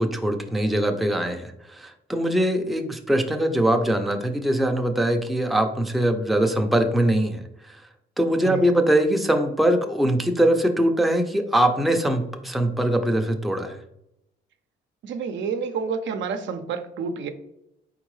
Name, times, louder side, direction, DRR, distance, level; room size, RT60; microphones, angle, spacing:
voice 1, 0.0-7.8 8.2-13.8, right 1 dB, ahead, 4 dB, 0.5 m, -22 dB
voice 2, 15.0-17.3, right 5 dB, 70° right, 7 dB, 0.6 m, -29 dB
4.4 x 3.7 x 3.2 m, 0.81 s
cardioid pair, 90°, 20 cm